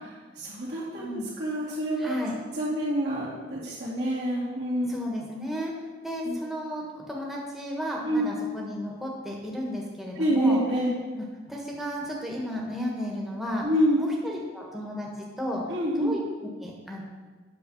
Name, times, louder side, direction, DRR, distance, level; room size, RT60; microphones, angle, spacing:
voice 1, 0.4-1.1 1.4-2.2 2.5-5.0 6.2-6.4 8.0-8.3 10.2-10.9 13.6-14.0 15.7-16.1, equal, 60° right, -11 dB, 2.4 m, -27 dB
voice 2, 1.0-1.3 2.0-2.3 4.8-5.7 6.0-10.6 11.1-13.7 14.0-15.1 15.4-15.6 16.0-16.2 16.6-17.0, equal, ahead, -3 dB, 1.3 m, -33 dB
8.9 x 6.5 x 5.5 m, 1.4 s
head